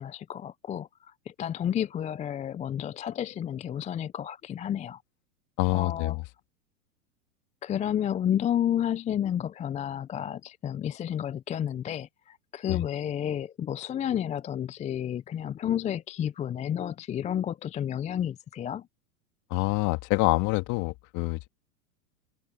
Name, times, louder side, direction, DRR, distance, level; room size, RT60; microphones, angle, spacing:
voice 1, 0.0-5.0 5.7-6.2 7.6-18.9, left 10 dB, 15° left, 0.5 m, -31 dB
voice 2, 5.6-6.2 12.7-12.8 19.5-21.5, left 23 dB, 45° left, 2.0 m, -26 dB
open air
hypercardioid pair, 105°, 43 cm